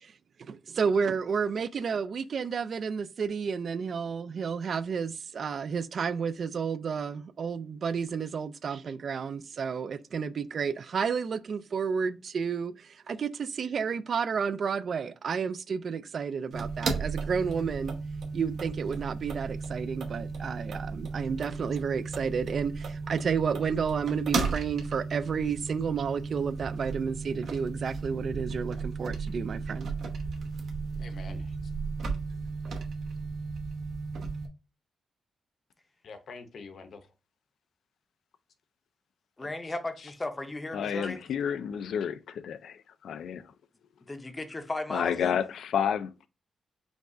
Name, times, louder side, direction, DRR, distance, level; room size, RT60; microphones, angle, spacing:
voice 1, 0.5-12.7 13.1-18.0 18.3-29.9, right 6 dB, 50° right, 0.3 m, -31 dB
sound 1, 16.5-34.5, right 4 dB, 75° right, 0.9 m, -35 dB
voice 2, 31.0-31.7 36.0-37.1 39.4-40.1 41.0-41.2, left 4 dB, 60° left, 0.8 m, -47 dB
voice 3, 39.4-41.2 44.1-45.4, left 2 dB, 20° left, 0.6 m, -35 dB
voice 4, 40.7-43.5 44.9-46.3, left 8 dB, 85° left, 0.4 m, -30 dB
5.2 x 2.4 x 3.6 m
wide cardioid pair, 150°, 0 cm